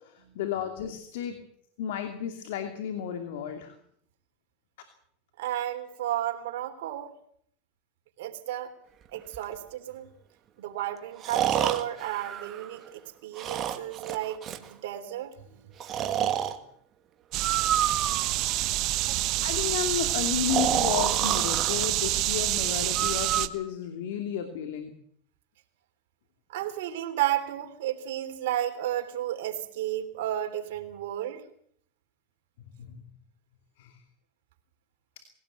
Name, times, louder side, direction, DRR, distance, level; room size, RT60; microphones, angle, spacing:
voice 1, 0.0-1.4 1.8-3.8 19.0-25.0 32.7-33.0 33.8-34.0, left 9 dB, 80° left, 7 dB, 2.7 m, -33 dB
voice 2, 5.4-7.1 8.2-8.7 9.1-10.1 10.6-15.7 18.0-19.4 26.5-31.4, right 12 dB, 80° right, 5 dB, 3.4 m, -33 dB
Breathing, 9.3-9.4 11.2-12.9 13.4-14.7 15.8-16.6 17.4-18.5 20.5-21.9 23.0-23.5, right 10 dB, 35° right, 2.2 m, -29 dB
sound 1, 17.3-23.5, right 17 dB, 55° right, 1.3 m, -27 dB
21.0 x 17.5 x 8.1 m, 0.65 s
supercardioid pair, 120°, 0 cm